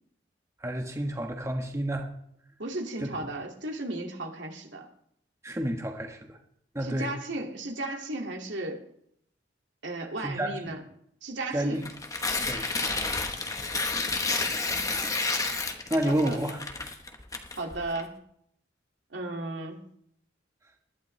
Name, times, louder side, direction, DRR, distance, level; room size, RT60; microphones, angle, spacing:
voice 1, 0.6-2.1 3.0-3.1 5.4-6.4 6.7-7.1 10.2-10.6 11.5-11.8 12.5-12.7 15.9-16.6, right 1 dB, 15° right, 3 dB, 1.2 m, -29 dB
voice 2, 2.6-4.9 6.8-8.8 9.8-10.8 11.2-11.9 16.1-16.4 17.6-18.1 19.1-19.8, right 2 dB, 80° right, 2 dB, 2.3 m, -35 dB
Tearing, 11.8-18.0, left 3 dB, 20° left, 1.1 m, -30 dB
20.0 x 12.0 x 3.3 m, 0.69 s
head